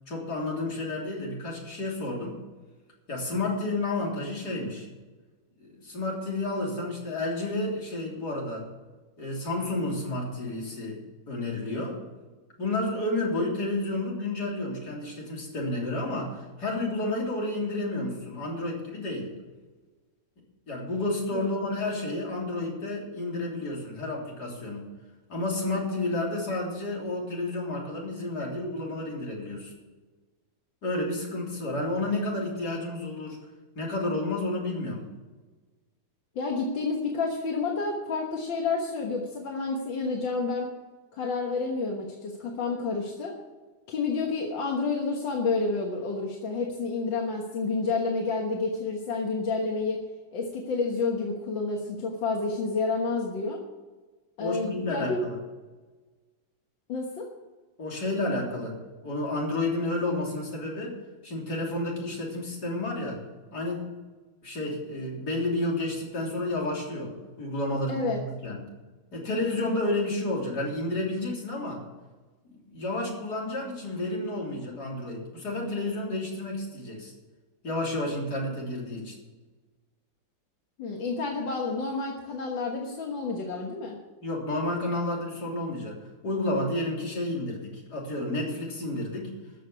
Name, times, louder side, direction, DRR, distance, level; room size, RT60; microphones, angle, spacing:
voice 1, 0.1-2.4 3.1-4.9 5.6-8.7 9.2-11.0 11.3-12.0 12.6-19.3 20.7-24.9 25.3-29.7 30.8-33.4 33.8-35.0 54.4-55.4 57.8-58.7 59.0-61.0 61.2-63.2 63.5-63.9 64.4-67.1 67.4-68.6 69.1-71.8 72.6-77.1 77.6-79.2 84.2-86.0 86.2-89.3, left 2 dB, 60° left, -2 dB, 3.9 m, -31 dB
voice 2, 36.4-40.7 41.1-43.3 43.9-50.0 50.3-53.6 54.4-55.2 56.9-57.3 67.9-68.2 80.8-84.0, left 4 dB, 85° left, 0 dB, 2.1 m, -29 dB
14.0 x 6.6 x 8.4 m, 1.2 s
omnidirectional pair, 2.0 m